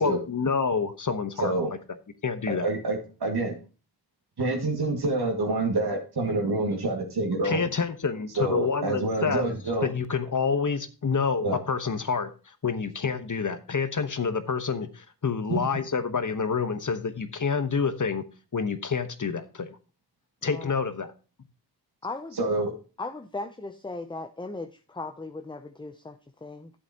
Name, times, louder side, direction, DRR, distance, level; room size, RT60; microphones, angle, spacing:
voice 1, 0.0-1.5 2.2-2.7 7.4-9.5 9.8-12.3 12.6-18.2 18.5-19.7 20.4-21.1, left 5 dB, 50° left, 10 dB, 1.1 m, -28 dB
voice 2, 2.6-3.6 4.4-7.6 8.4-9.9 11.4-11.6 15.5-15.6 22.4-22.7, right 2 dB, 75° right, 1 dB, 2.0 m, -27 dB
voice 3, 22.0-22.4 23.0-26.7, left 3 dB, 10° left, 9 dB, 0.6 m, -37 dB
11.5 x 7.9 x 2.9 m, 0.34 s
wide cardioid pair, 70°, 39 cm